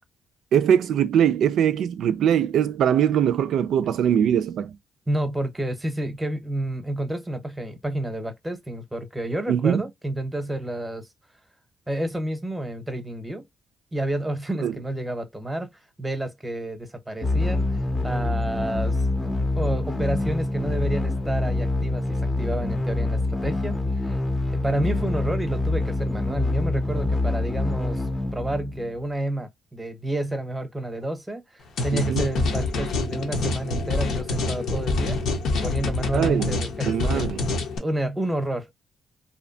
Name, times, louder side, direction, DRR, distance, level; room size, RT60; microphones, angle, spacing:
voice 1, 0.5-4.8 9.5-9.8 14.6-14.7 31.9-32.2 36.1-36.5 36.9-37.5, right 9 dB, 70° right, 0.3 m, -22 dB
voice 2, 5.1-11.1 11.9-13.5 13.9-15.7 16.0-19.0 19.5-24.2 24.5-28.0 28.3-35.2 35.5-37.2 37.8-38.7, right 1 dB, 10° right, 0.8 m, -30 dB
sound 1, 17.2-29.1, left 2 dB, 25° left, 0.6 m, -26 dB
sound 2, 31.8-37.8, left 3 dB, 75° left, 0.7 m, -26 dB
2.7 x 2.1 x 2.6 m
cardioid pair, 90°, 0 cm